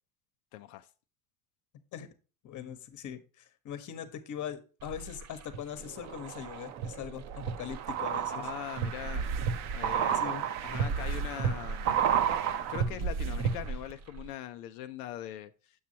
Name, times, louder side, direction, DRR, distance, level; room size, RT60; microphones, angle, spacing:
voice 1, 0.5-0.9 8.4-9.3 9.7-10.3 10.6-12.2 12.7-15.8, left 13 dB, 90° left, 0.6 m, -41 dB
voice 2, 2.4-8.5 10.1-10.4, left 9 dB, 45° left, 1.1 m, -41 dB
sound 1, 4.8-5.6 6.0-13.9 14.2-14.3, right 7 dB, 40° right, 0.6 m, -31 dB
sound 2, 5.8-12.8, right 10 dB, 70° right, 0.8 m, -44 dB
7.1 x 6.2 x 2.8 m
supercardioid pair, 95°, 43 cm